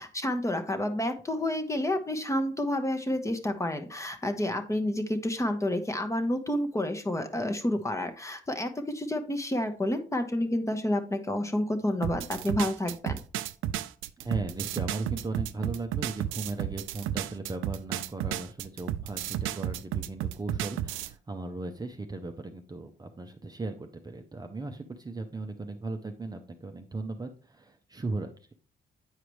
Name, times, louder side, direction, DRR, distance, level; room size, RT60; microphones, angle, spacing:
voice 1, 0.0-13.2, left 1 dB, 15° left, 6 dB, 0.9 m, -29 dB
sound 1, 12.0-21.1, right 12 dB, 90° right, 0.4 m, -33 dB
voice 2, 14.2-28.3, right 3 dB, 20° right, 5 dB, 0.6 m, -37 dB
8.2 x 4.8 x 3.1 m, 0.38 s
cardioid pair, 90°, 20 cm